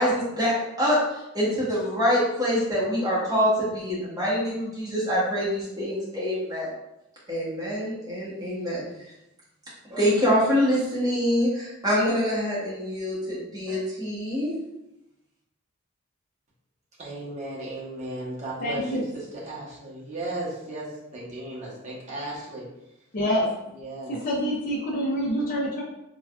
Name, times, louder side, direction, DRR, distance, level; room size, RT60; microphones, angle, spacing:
voice 1, 0.0-6.7 7.3-8.8 9.8-14.5, equal, 15° right, -8 dB, 1.1 m, -25 dB
voice 2, 17.0-20.9 21.1-22.6 23.8-24.1, right 1 dB, 35° right, -6 dB, 0.9 m, -35 dB
voice 3, 18.6-19.0 23.1-23.5 24.1-25.8, equal, 40° left, -4 dB, 0.5 m, -26 dB
3.4 x 2.2 x 2.3 m, 0.88 s
head